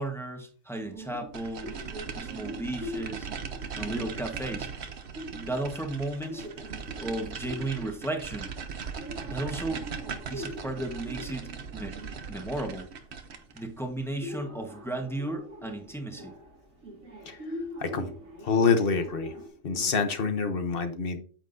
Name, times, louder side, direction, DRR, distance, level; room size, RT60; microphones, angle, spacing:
voice 1, 0.0-1.7 2.1-3.3 3.7-4.7 5.3-6.4 7.0-8.5 9.2-9.9 10.3-11.9 12.3-12.9 13.5-16.3, right 2 dB, ahead, 3 dB, 1.1 m, -34 dB
sound 1, 0.8-19.5, equal, 80° right, 2.5 m, -43 dB
sound 2, 1.3-13.7, right 6 dB, 60° right, 1.1 m, -39 dB
voice 2, 17.8-18.1 18.4-19.3 19.6-21.2, left 5 dB, 50° left, 8 dB, 1.1 m, -26 dB
9.1 x 7.5 x 2.7 m, 0.42 s
omnidirectional pair, 1.3 m